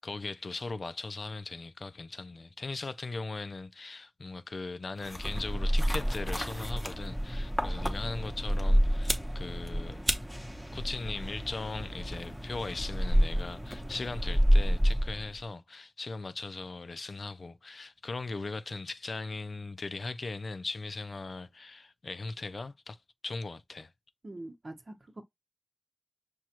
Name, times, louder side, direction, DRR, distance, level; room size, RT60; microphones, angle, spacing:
voice 1, 0.0-10.0 10.7-23.0 23.2-23.9, left 3 dB, 85° left, 0.4 m, -39 dB
sound 1, 5.0-15.4, equal, ahead, 0.8 m, -29 dB
voice 2, 24.2-25.2, right 1 dB, 55° right, 0.9 m, -44 dB
6.2 x 2.2 x 2.8 m
wide cardioid pair, 70°, 0 cm